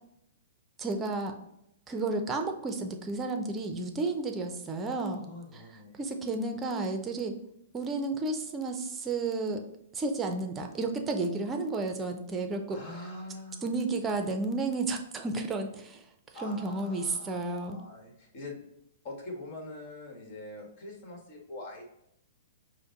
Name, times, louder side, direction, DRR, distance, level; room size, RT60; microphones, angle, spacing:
voice 1, 0.8-1.3 1.9-5.2 5.5-5.6 6.0-7.4 7.7-9.6 9.9-12.8 13.6-16.0 16.4-17.8, right 3 dB, 20° right, 5 dB, 0.6 m, -32 dB
voice 2, 5.1-6.0 12.7-13.7 16.3-18.6 19.0-21.8, left 2 dB, 45° left, 1 dB, 1.5 m, -44 dB
5.1 x 2.2 x 3.8 m, 0.81 s
hypercardioid pair, 125°, 0 cm